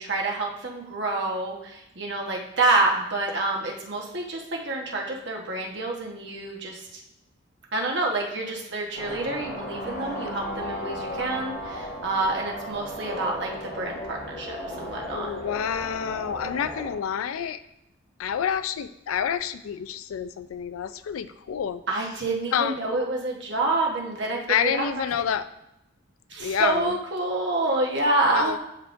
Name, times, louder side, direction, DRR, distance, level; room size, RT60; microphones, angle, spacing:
voice 1, 0.0-7.0 7.7-15.3 21.9-24.9 26.3-28.6, right 2 dB, 55° right, -1 dB, 1.1 m, -27 dB
sound 1, 8.9-16.9, left 1 dB, 55° left, 1.8 m, -35 dB
voice 2, 15.0-17.6 18.2-21.8 22.5-22.7 24.5-25.5 26.4-26.9 28.3-28.6, left 8 dB, 90° left, 13 dB, 0.4 m, -28 dB
11.0 x 3.7 x 2.6 m, 0.86 s
head